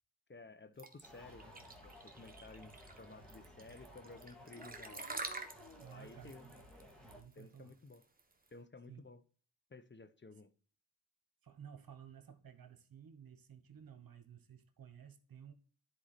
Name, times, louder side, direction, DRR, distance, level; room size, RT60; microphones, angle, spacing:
voice 1, 0.3-1.5 1.8-5.1 5.9-6.5 7.3-8.0 8.5-9.2 9.7-10.5, left 3 dB, 30° left, 0.9 m, -55 dB
sound 1, 0.8-8.5, right 3 dB, 20° right, 1.4 m, -47 dB
sound 2, 1.0-7.2, equal, ahead, 2.7 m, -56 dB
voice 2, 5.8-6.5 7.0-7.8 8.9-9.1 11.4-15.5, right 8 dB, 60° right, 1.1 m, -55 dB
10.0 x 4.6 x 4.3 m
cardioid pair, 50°, 39 cm